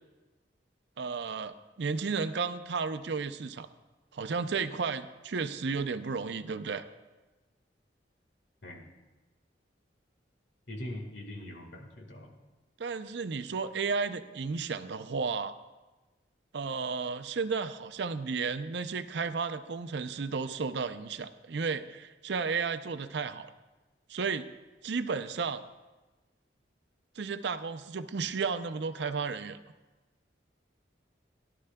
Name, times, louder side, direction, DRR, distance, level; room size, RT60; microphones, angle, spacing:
voice 1, 1.0-3.7 4.1-6.8 12.8-15.5 16.5-23.5 24.1-24.5 24.8-25.6 27.2-29.6, right 5 dB, 70° right, 11 dB, 0.5 m, -33 dB
voice 2, 10.7-12.3, left 1 dB, 90° left, 2 dB, 1.7 m, -42 dB
17.0 x 11.0 x 2.2 m, 1.2 s
head